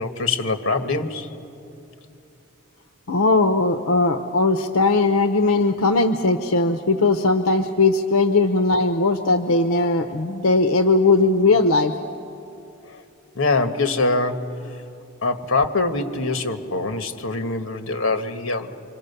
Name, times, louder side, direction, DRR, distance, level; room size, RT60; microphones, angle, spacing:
voice 1, 0.0-1.3 12.9-13.0 13.3-14.5 15.2-18.7, left 3 dB, 65° left, 7 dB, 1.4 m, -24 dB
voice 2, 3.1-11.9, left 3 dB, 85° left, 8 dB, 0.8 m, -19 dB
26.0 x 26.0 x 6.8 m, 2.8 s
head